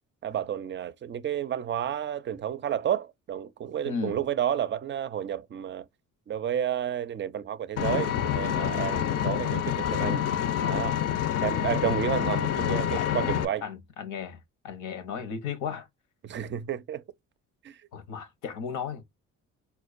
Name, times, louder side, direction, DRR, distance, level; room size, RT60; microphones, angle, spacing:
voice 1, 0.2-5.9 6.3-10.3 10.6-11.0 11.4-13.6 16.2-17.0 17.6-17.8, right 10 dB, 40° right, 0.4 m, -31 dB
voice 2, 3.8-4.2 12.3-13.1 13.6-15.9 17.9-19.0, left 6 dB, 90° left, 0.8 m, -35 dB
Vehicle, 7.8-13.5, left 10 dB, 55° left, 0.5 m, -27 dB
4.3 x 2.3 x 2.4 m
cardioid pair, 90°, 30 cm